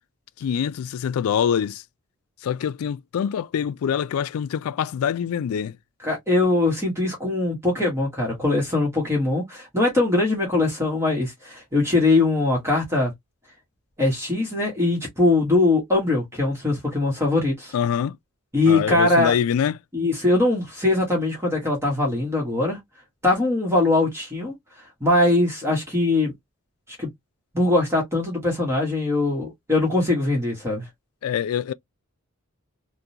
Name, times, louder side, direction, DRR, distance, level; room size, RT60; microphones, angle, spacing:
voice 1, 0.4-1.8 2.4-5.8 17.7-18.2 18.7-19.8 31.2-31.7, left 8 dB, 80° left, 0.3 m, -25 dB
voice 2, 6.0-13.1 14.0-17.7 18.5-19.3 19.9-22.8 23.2-24.5 25.0-26.3 27.0-27.1 27.5-30.9, left 2 dB, 10° right, 1.2 m, -21 dB
3.6 x 2.3 x 2.7 m
head